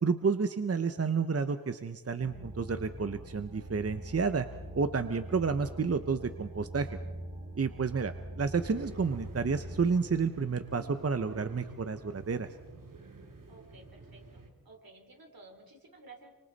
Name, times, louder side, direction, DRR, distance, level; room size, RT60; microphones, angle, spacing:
voice 1, 0.0-4.5 4.7-6.9 7.5-12.5, right 5 dB, 45° right, 9 dB, 0.8 m, -30 dB
sound 1, 2.2-9.9, right 1 dB, 20° right, 7.2 m, -43 dB
sound 2, 8.5-14.5, right 3 dB, 65° right, 2.8 m, -49 dB
voice 2, 13.5-16.4, right 3 dB, 80° right, 3 dB, 3.7 m, -54 dB
28.5 x 24.5 x 4.2 m, 1.3 s
wide cardioid pair, 85°, 35 cm